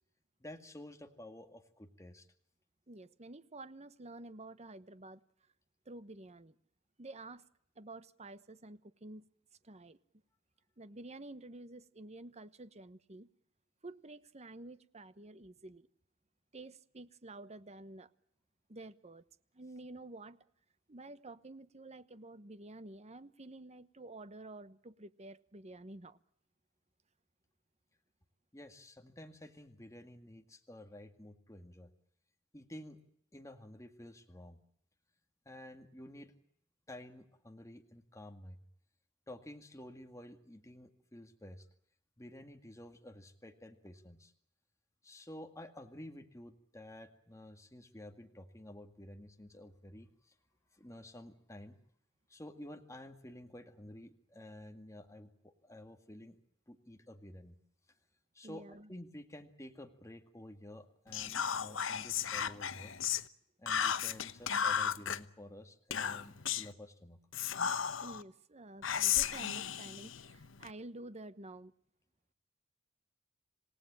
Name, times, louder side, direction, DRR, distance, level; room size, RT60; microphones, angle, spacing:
voice 1, 0.4-2.3 28.5-31.9 32.5-33.0 33.3-34.6 35.5-36.3 36.9-38.6 39.3-41.7 42.2-44.3 45.0-50.3 50.7-51.8 52.3-56.4 56.7-57.5 58.3-58.6 58.9-62.9 63.6-67.2, left 1 dB, 15° left, 5 dB, 2.0 m, -51 dB
voice 2, 2.9-5.2 5.9-6.5 7.0-7.4 7.8-9.2 9.6-10.0 10.8-13.3 13.8-15.9 16.5-18.1 18.7-19.2 19.5-20.4 20.9-26.2 58.4-58.9 68.0-71.7, right 2 dB, 35° right, 14 dB, 1.1 m, -50 dB
Whispering, 61.1-63.2 63.7-65.2 65.9-66.7 67.3-68.2 68.8-70.7, left 8 dB, 70° left, 1.0 m, -34 dB
27.5 x 18.0 x 8.8 m, 0.72 s
head